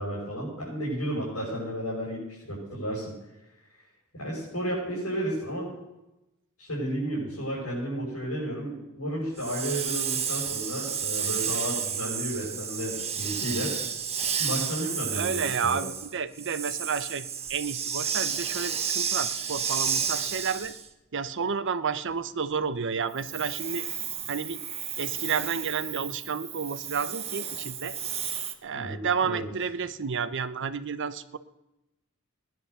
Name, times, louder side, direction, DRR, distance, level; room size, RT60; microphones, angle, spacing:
voice 1, 0.0-3.1 4.1-5.7 6.6-13.7 14.4-15.8 28.7-29.4, right 1 dB, 90° left, -7 dB, 6.7 m, -32 dB
Hiss, 9.4-20.9 23.1-28.5, right 7 dB, 30° right, 1.2 m, -32 dB
voice 2, 15.1-20.7 21.1-23.9 24.3-24.6 25.0-28.0 28.6-31.4, right 6 dB, 60° right, 13 dB, 0.8 m, -31 dB
18.5 x 10.5 x 6.8 m, 0.97 s
head